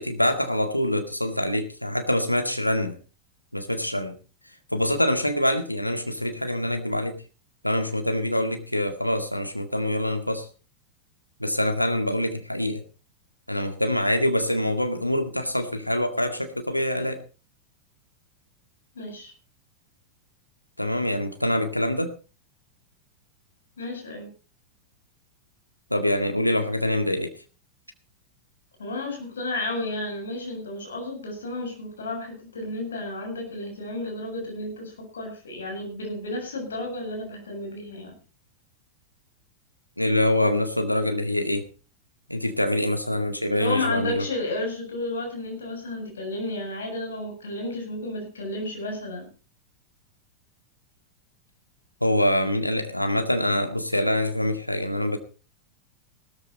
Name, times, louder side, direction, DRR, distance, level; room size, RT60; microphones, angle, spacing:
voice 1, 0.0-3.0 3.5-4.2 4.7-7.2 7.6-10.5 11.4-12.8 13.5-17.2 20.8-22.1 25.9-27.3 40.0-41.7 42.3-44.3 52.0-55.2, left 1 dB, 90° left, 6 dB, 2.0 m, -25 dB
voice 2, 18.9-19.3 23.8-24.3 28.8-38.2 43.5-49.3, left 2 dB, 70° left, 2 dB, 7.6 m, -32 dB
16.0 x 14.0 x 4.2 m, 0.35 s
figure-of-eight pair, 90°, 0 cm